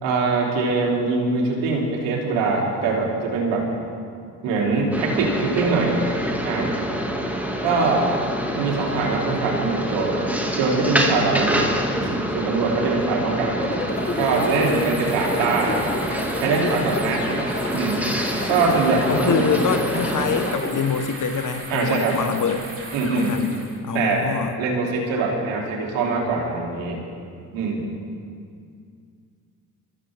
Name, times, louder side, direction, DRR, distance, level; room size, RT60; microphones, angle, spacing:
voice 1, 0.0-3.7 4.4-6.0 6.4-6.7 7.6-8.1 8.6-10.2 10.6-11.7 12.0-13.6 14.2-15.8 16.3-17.2 17.7-18.0 18.5-19.4 21.7-22.2 22.9-23.4 23.9-24.3 24.6-27.0 27.5-27.9, right 4 dB, 70° right, -2 dB, 3.2 m, -22 dB
sound 1, 4.9-20.6, equal, 5° right, 2.2 m, -26 dB
sound 2, 13.6-20.9, left 2 dB, 20° left, 1.5 m, -31 dB
sound 3, 13.9-23.8, right 2 dB, 30° right, 3.9 m, -37 dB
voice 2, 19.1-22.7 23.0-23.6 23.8-24.6, left 6 dB, 40° left, 9 dB, 1.4 m, -25 dB
22.0 x 14.0 x 3.6 m, 2.3 s
hypercardioid pair, 45°, 46 cm